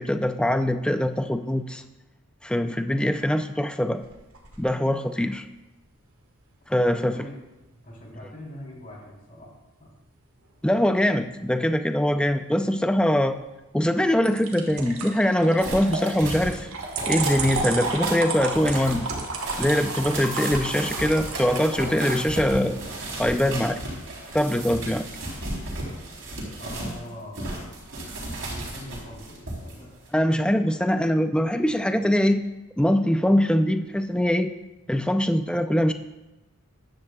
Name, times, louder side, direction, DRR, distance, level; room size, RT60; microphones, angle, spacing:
voice 1, 0.0-1.8 2.4-4.0 4.6-5.5 6.7-7.2 10.6-13.4 13.7-16.7 17.1-19.1 19.6-22.8 23.2-23.8 24.3-25.0 30.1-32.4 32.8-34.5 34.9-35.9, equal, 5° left, 8 dB, 0.4 m, -22 dB
sound 1, 4.0-4.6 14.2-21.6, right 3 dB, 70° right, 1.7 m, -32 dB
voice 2, 6.8-7.4 7.8-9.5 9.8-9.9 20.7-20.8 26.6-27.5 28.3-29.9, left 1 dB, 40° left, -3 dB, 3.5 m, -42 dB
sound 2, 15.6-27.0 27.3-29.7 30.1-30.2, right 2 dB, 55° right, 3.4 m, -34 dB
14.5 x 10.5 x 2.3 m, 1.0 s
head